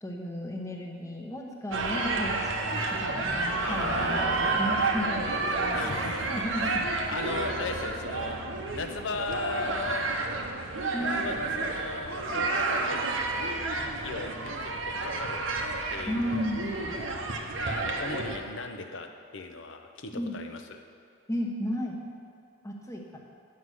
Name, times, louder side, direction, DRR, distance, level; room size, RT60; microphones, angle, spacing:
voice 1, 0.0-5.9 6.3-6.8 10.9-11.3 16.1-17.0 20.1-20.4 21.3-22.0 22.6-23.2, equal, 15° left, 0 dB, 0.9 m, -34 dB
sound 1, 1.7-18.4, right 3 dB, 80° right, 0.8 m, -30 dB
voice 2, 3.6-4.6 5.7-6.8 7.1-8.4 8.7-10.1 11.0-15.4 15.9-16.9 17.6-19.1 19.3-20.8, left 3 dB, 70° left, 6 dB, 0.7 m, -38 dB
9.5 x 5.5 x 6.4 m, 2.2 s
head